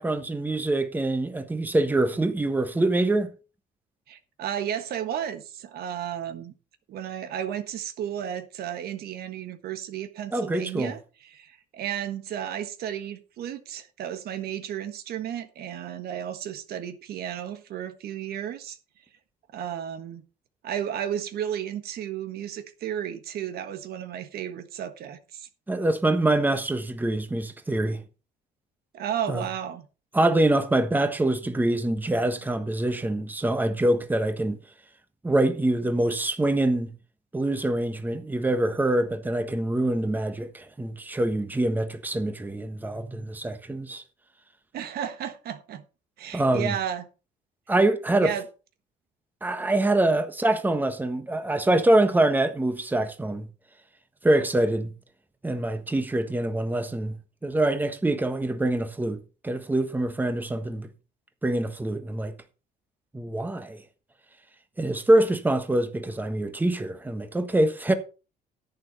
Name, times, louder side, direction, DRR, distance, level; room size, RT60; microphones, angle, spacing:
voice 1, 0.0-3.3 10.3-10.9 25.7-28.0 29.3-29.4 30.1-34.6 35.2-36.9 37.3-44.0 46.3-46.7 47.7-48.3 49.4-53.5 54.2-54.9 55.4-57.1 57.4-60.9 61.4-62.3 63.1-63.8 64.8-67.9, right 1 dB, 10° right, 1.4 m, -25 dB
voice 2, 4.1-6.5 6.9-18.8 19.5-20.2 20.6-25.5 28.9-29.9 44.7-45.8 46.2-47.1 48.2-48.4, right 10 dB, 65° right, 1.4 m, -33 dB
10.5 x 9.1 x 4.1 m
cardioid pair, 110°, 17 cm